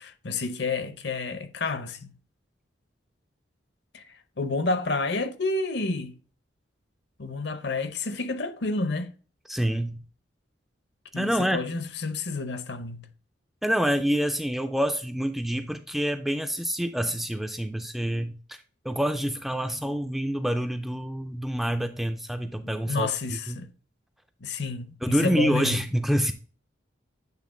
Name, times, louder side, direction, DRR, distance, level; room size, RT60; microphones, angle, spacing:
voice 1, 0.0-2.1 3.9-4.1 4.4-6.1 7.2-9.1 11.1-13.1 22.6-23.7 24.4-25.8, left 3 dB, 60° left, 0.7 m, -30 dB
voice 2, 9.5-10.0 11.2-11.6 13.6-18.6 18.9-23.6 25.0-26.3, equal, ahead, 0.3 m, -27 dB
8.3 x 3.5 x 3.7 m
head